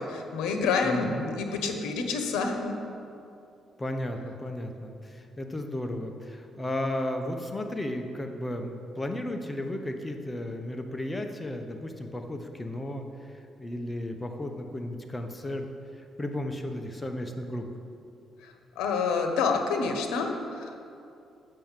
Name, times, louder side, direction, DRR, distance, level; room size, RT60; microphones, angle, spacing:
voice 1, 0.0-2.7 18.4-20.8, left 4 dB, 90° left, 4 dB, 1.0 m, -28 dB
voice 2, 0.8-1.3 3.8-15.7 16.2-17.7, left 1 dB, 20° left, 5 dB, 0.9 m, -34 dB
7.7 x 6.3 x 7.4 m, 2.6 s
cardioid pair, 90°, 0 cm